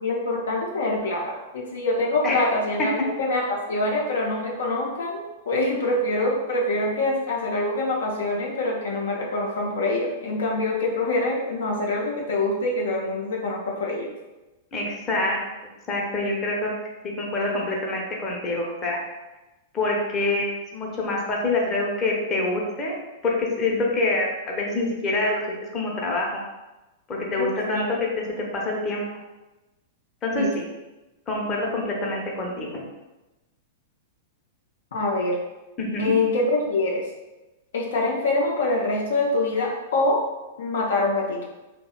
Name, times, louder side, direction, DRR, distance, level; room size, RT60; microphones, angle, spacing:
voice 1, 0.0-14.1 27.4-27.9 30.4-30.5 34.9-35.4 36.0-37.0 37.7-40.2 40.6-41.4, left 2 dB, 75° left, -2 dB, 0.4 m, -25 dB
voice 2, 14.7-15.5 15.9-16.7 17.2-19.0 19.7-23.0 23.2-26.4 27.1-29.0 30.2-30.7 31.3-32.8 35.8-36.1, left 2 dB, 30° left, -2 dB, 0.6 m, -26 dB
2.7 x 2.0 x 2.3 m, 1.1 s
hypercardioid pair, 105°, 0 cm